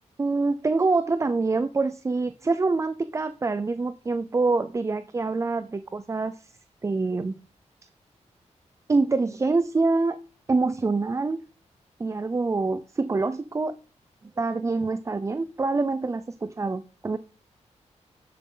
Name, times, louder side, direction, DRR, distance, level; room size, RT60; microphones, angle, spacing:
voice 1, 0.2-6.5 6.8-7.4 8.9-10.2 10.5-11.4 12.0-13.8 14.2-17.2, right 3 dB, 25° right, 12 dB, 0.5 m, -25 dB
11.0 x 7.7 x 3.9 m, 0.39 s
wide cardioid pair, 130°, 12 cm